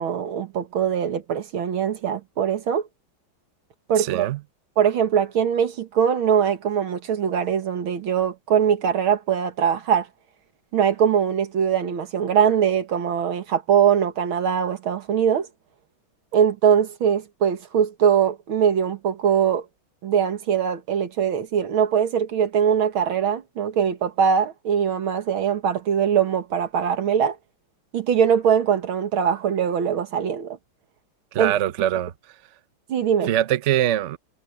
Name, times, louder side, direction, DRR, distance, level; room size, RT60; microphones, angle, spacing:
voice 1, 0.0-2.9 3.9-4.3 4.8-10.1 10.7-15.5 16.3-19.6 20.0-27.4 27.9-30.6 31.4-31.5 32.9-33.3, right 8 dB, 85° right, 2.4 m, -22 dB
voice 2, 4.0-4.4 31.3-32.1 33.3-34.2, right 12 dB, 65° right, 0.7 m, -22 dB
omnidirectional pair, 2.2 m